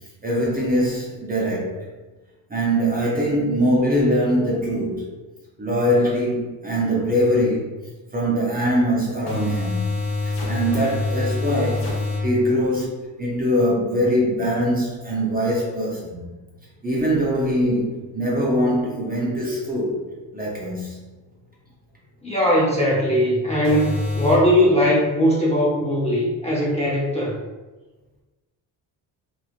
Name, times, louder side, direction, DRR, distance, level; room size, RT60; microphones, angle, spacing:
voice 1, 0.2-1.9 2.5-5.1 5.6-7.7 8.1-9.9 10.5-11.9 12.2-16.3 16.8-20.0 20.3-21.0, equal, 20° right, -5 dB, 0.6 m, -22 dB
sound 1, 7.8-7.9 9.3-12.3 23.6-24.4, left 2 dB, 60° left, 1.0 m, -25 dB
voice 2, 22.2-27.4, equal, 15° left, -5 dB, 0.7 m, -19 dB
2.9 x 2.4 x 2.4 m, 1.2 s
cardioid pair, 100°, 44 cm